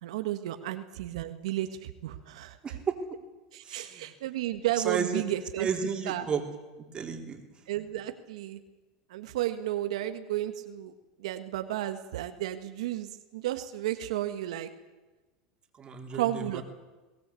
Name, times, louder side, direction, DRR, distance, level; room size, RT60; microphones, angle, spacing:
voice 1, 0.0-2.8 3.5-5.7 6.0-6.3 7.7-8.6 9.1-10.9 11.2-14.7 16.1-16.6, right 13 dB, 85° right, 8 dB, 1.6 m, -33 dB
voice 2, 2.6-2.9 3.6-4.0 4.9-5.2 5.6-6.4 6.9-7.4 15.8-16.6, right 6 dB, 30° right, 4 dB, 3.8 m, -32 dB
22.0 x 18.0 x 8.5 m, 1.2 s
supercardioid pair, 115°, 3 cm